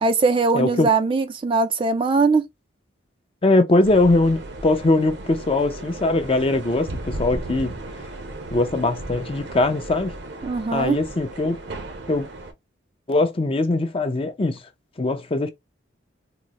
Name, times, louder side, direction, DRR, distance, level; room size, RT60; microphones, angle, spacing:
voice 1, 0.0-2.5 10.4-11.0, right 4 dB, 30° right, 0.3 m, -20 dB
voice 2, 0.5-0.9 3.4-7.7 8.5-10.1 10.7-11.6 12.1-12.3 13.1-14.6 15.0-15.5, left 2 dB, 30° left, 0.5 m, -21 dB
sound 1, 3.8-12.5, right 2 dB, 60° right, 0.7 m, -35 dB
3.8 x 2.0 x 2.9 m
head